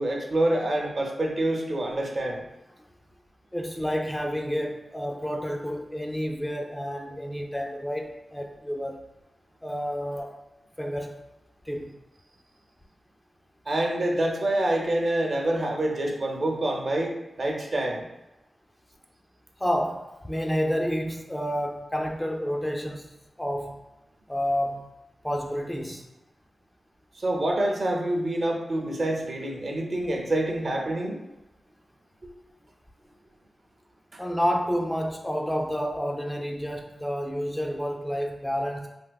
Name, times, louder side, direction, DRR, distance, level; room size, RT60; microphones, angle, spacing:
voice 1, 0.0-2.5 13.7-18.0 27.2-31.2 34.1-34.2, right 1 dB, 50° right, 1 dB, 0.5 m, -27 dB
voice 2, 3.5-9.0 9.6-10.3 10.8-11.2 11.6-11.9 19.6-23.8 24.3-24.8 25.2-26.1 34.2-38.9, equal, 10° left, 1 dB, 0.3 m, -29 dB
3.5 x 2.7 x 2.2 m, 0.98 s
wide cardioid pair, 115°, 0 cm